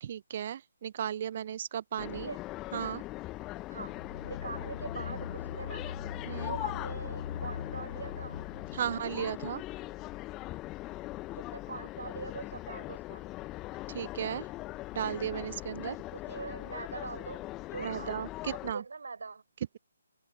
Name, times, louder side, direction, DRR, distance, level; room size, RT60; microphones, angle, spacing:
voice 1, 0.0-2.3 2.7-3.0 6.3-6.6 8.7-9.6 13.9-14.5 14.9-16.0 17.8-18.8, right 9 dB, 40° right, 0.3 m, -35 dB
sound 1, 2.0-18.7, left 18 dB, 15° left, 1.0 m, -41 dB
voice 2, 2.1-2.4 3.7-3.9 4.2-6.0 6.3-8.4 11.4-13.3 16.1-17.4 17.7-18.2 18.5-19.4, right 4 dB, 60° right, 7.8 m, -43 dB
sound 2, 3.8-9.0, left 7 dB, 45° left, 6.4 m, -41 dB
open air
figure-of-eight pair, 140°, 0 cm